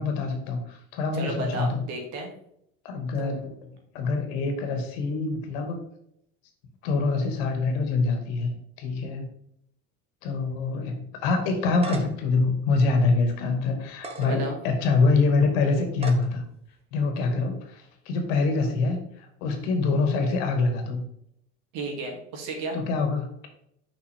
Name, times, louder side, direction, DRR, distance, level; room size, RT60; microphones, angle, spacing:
voice 1, 0.0-1.8 2.8-3.5 3.9-5.8 6.8-9.3 10.2-16.4 16.9-21.0 22.7-23.5, left 3 dB, 80° left, 5 dB, 2.0 m, -25 dB
voice 2, 1.1-2.3 3.2-3.3 14.2-14.6 21.7-22.8, right 2 dB, 65° right, 1 dB, 2.6 m, -33 dB
sound 1, 11.5-12.3 12.8-12.9 13.9-14.3 14.9-15.0 15.9-16.3, right 2 dB, 20° right, 1.0 m, -36 dB
6.0 x 5.7 x 3.6 m, 0.74 s
cardioid pair, 160°, 30 cm